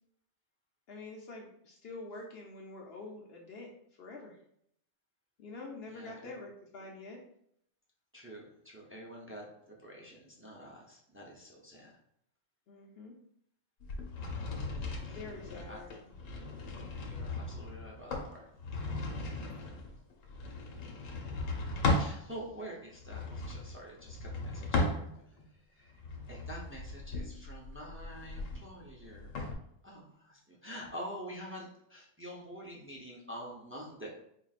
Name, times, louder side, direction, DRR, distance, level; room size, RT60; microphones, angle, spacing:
voice 1, 0.9-3.7 4.0-4.4 5.4-7.2 12.7-13.1 15.1-16.2, left 3 dB, 60° left, 0 dB, 0.8 m, -46 dB
voice 2, 5.9-6.3 8.1-11.9 15.0-15.8 17.0-18.5 21.9-26.0 26.3-29.5 29.8-34.1, equal, 20° right, -3 dB, 0.4 m, -47 dB
sound 1, 13.8-22.2 23.0-25.4 25.9-29.5, left 2 dB, 90° left, 1.1 m, -36 dB
4.3 x 3.1 x 2.4 m, 0.72 s
omnidirectional pair, 1.3 m